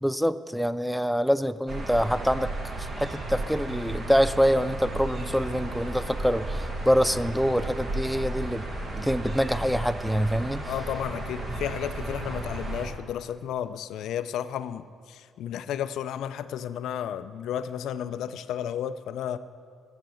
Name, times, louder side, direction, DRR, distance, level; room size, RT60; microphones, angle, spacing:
voice 1, 0.0-8.7 9.0-10.7, equal, ahead, 12 dB, 0.3 m, -25 dB
sound 1, 1.7-12.9, right 2 dB, 50° right, 1.6 m, -34 dB
voice 2, 10.7-19.4, left 9 dB, 80° left, 12 dB, 0.4 m, -33 dB
9.0 x 7.1 x 7.7 m, 2.2 s
cardioid pair, 90°, 0 cm